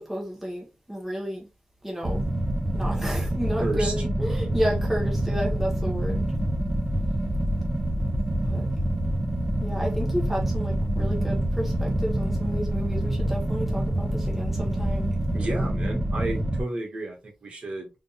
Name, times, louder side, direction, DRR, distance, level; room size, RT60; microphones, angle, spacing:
voice 1, 0.0-1.5 1.8-2.2 2.7-6.3 8.4-8.7 9.6-15.1, equal, 5° right, 1.2 m, -31 dB
sound 1, 2.0-16.6, right 1 dB, 30° right, 1.1 m, -26 dB
voice 2, 3.6-3.9 15.3-17.9, right 2 dB, 50° right, 1.8 m, -31 dB
4.0 x 3.6 x 2.4 m
wide cardioid pair, 145°, 3 cm